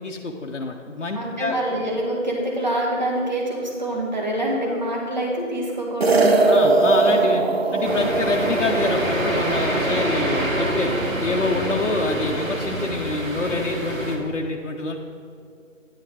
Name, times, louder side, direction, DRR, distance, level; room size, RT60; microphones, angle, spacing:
voice 1, 0.0-1.5 4.7-4.8 6.5-7.4 7.7-15.0, left 2 dB, 65° left, 1 dB, 0.8 m, -26 dB
voice 2, 1.1-6.6, right 1 dB, 35° right, -2 dB, 1.6 m, -26 dB
sound 1, 6.0-10.5, right 3 dB, 50° right, 0.8 m, -21 dB
sound 2, 7.8-14.2, right 1 dB, 85° right, 1.8 m, -26 dB
9.7 x 6.2 x 4.5 m, 2.3 s
figure-of-eight pair, 165°, 40 cm